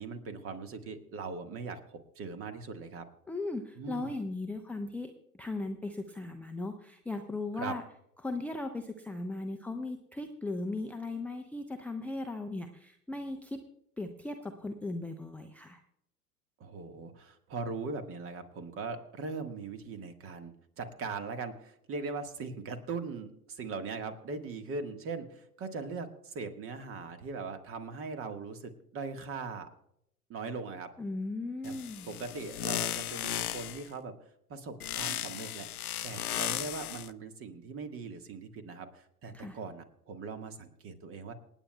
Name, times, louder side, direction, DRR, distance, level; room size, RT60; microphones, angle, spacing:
voice 1, 0.0-3.1 3.8-4.1 7.5-7.8 16.6-29.7 30.3-30.9 31.6-31.7 32.1-34.1 34.5-41.3, right 4 dB, 30° right, 9 dB, 1.5 m, -40 dB
voice 2, 3.3-7.8 8.2-13.6 14.0-15.8 31.0-32.1 39.3-39.6, left 2 dB, 5° left, 4 dB, 0.6 m, -37 dB
sound 1, 31.6-33.9 34.8-37.1, left 12 dB, 75° left, 0.6 m, -36 dB
27.5 x 9.2 x 2.3 m, 0.73 s
figure-of-eight pair, 85°, 45 cm